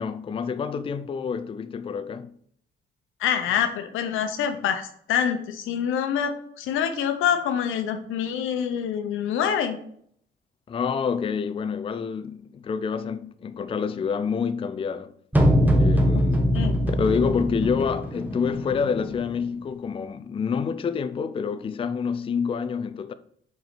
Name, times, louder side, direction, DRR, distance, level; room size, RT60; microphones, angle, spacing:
voice 1, 0.0-2.3 10.7-15.1 15.8-16.5 17.0-23.1, left 6 dB, 25° left, 0.4 m, -27 dB
voice 2, 3.2-9.8 16.5-16.8, left 8 dB, 90° left, 0.9 m, -26 dB
sound 1, 15.3-19.4, equal, 10° right, 1.1 m, -22 dB
5.2 x 4.6 x 5.0 m
cardioid pair, 90°, 20 cm